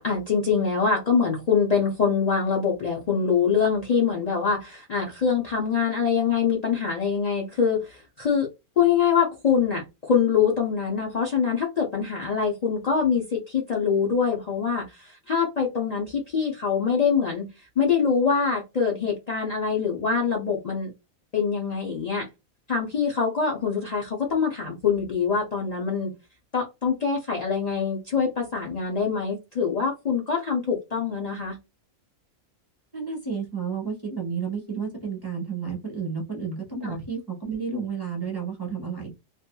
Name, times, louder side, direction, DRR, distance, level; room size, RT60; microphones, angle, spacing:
voice 1, 0.0-8.5 8.8-17.5 17.8-20.9 21.3-22.3 22.7-26.1 26.5-31.6 36.8-37.0, left 6 dB, 75° left, 0.3 m, -24 dB
voice 2, 32.9-39.1, right 5 dB, 20° right, 0.9 m, -31 dB
2.7 x 2.6 x 2.2 m
omnidirectional pair, 1.5 m